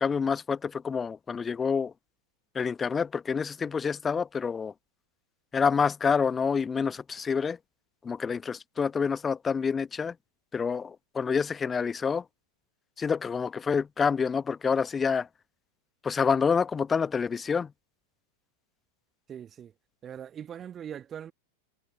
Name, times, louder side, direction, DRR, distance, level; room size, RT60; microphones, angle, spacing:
voice 1, 0.0-1.9 2.5-4.7 5.5-7.6 8.0-10.1 10.5-12.2 13.0-15.3 16.0-17.7, left 6 dB, 15° left, 1.0 m, -27 dB
voice 2, 19.3-19.7 20.0-21.3, right 9 dB, 25° right, 1.4 m, -41 dB
figure-of-eight pair, 90°, 0 cm